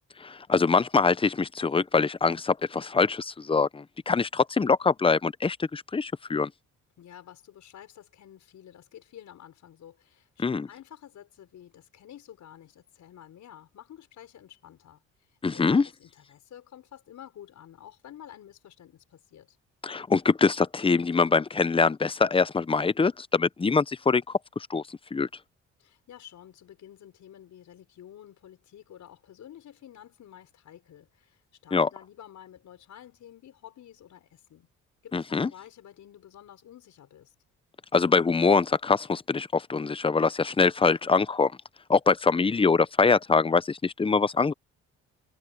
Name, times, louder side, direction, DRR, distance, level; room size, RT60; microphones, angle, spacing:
voice 1, 0.2-6.5 10.4-10.7 15.4-15.9 19.8-24.2 24.7-24.8 25.1-25.3 31.7-31.9 35.1-35.5 37.9-41.5 41.9-44.5, left 4 dB, 20° left, 0.7 m, -24 dB
voice 2, 7.0-15.0 15.5-19.6 25.8-34.7 35.0-37.3, left 10 dB, 70° left, 6.1 m, -50 dB
cardioid pair, 90°, 30 cm